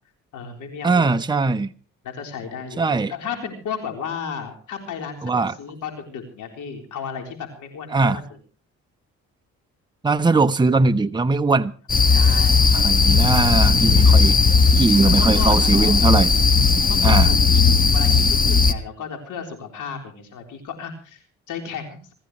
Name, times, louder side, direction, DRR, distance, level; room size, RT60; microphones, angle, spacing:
voice 1, 0.3-1.1 2.0-8.2 12.1-12.7 15.0-16.0 16.9-22.1, left 6 dB, 85° left, 3 dB, 3.9 m, -34 dB
voice 2, 0.8-1.7 2.8-3.1 5.2-5.5 7.9-8.2 10.0-11.7 12.7-14.4 14.7-16.4 17.0-17.3, right 3 dB, 15° right, 8 dB, 0.9 m, -20 dB
sound 1, 11.9-18.7, left 4 dB, 30° left, 1.3 m, -16 dB
26.5 x 14.5 x 3.1 m, 0.39 s
cardioid pair, 90°, 30 cm